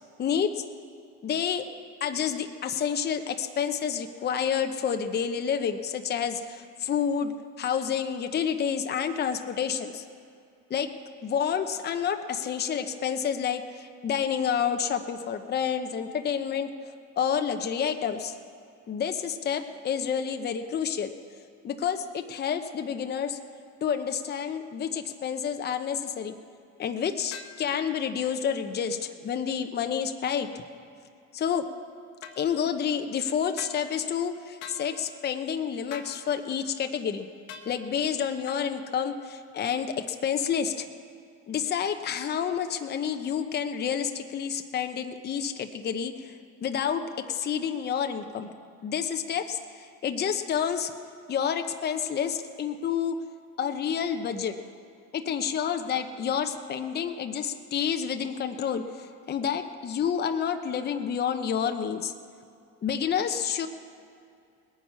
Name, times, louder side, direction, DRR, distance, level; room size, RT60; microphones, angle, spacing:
voice 1, 0.2-0.6 1.2-1.6 2.0-7.3 7.6-10.0 10.7-10.9 11.2-16.7 17.2-18.4 18.9-21.1 21.6-23.4 23.8-26.3 26.8-30.5 31.3-31.7 32.4-37.3 37.6-40.9 41.5-46.3 46.6-47.0 47.3-48.5 48.8-50.9 51.3-53.1 53.6-54.5 55.1-62.1 62.8-63.7, left 7 dB, 35° left, 7 dB, 0.8 m, -29 dB
sound 1, 27.3-27.6 32.2-32.4 33.6-33.8 34.6-34.8 35.9-36.2 37.5-37.7 38.5-38.6, left 7 dB, 75° left, 1.4 m, -42 dB
20.0 x 9.5 x 5.7 m, 2.4 s
cardioid pair, 115°, 30 cm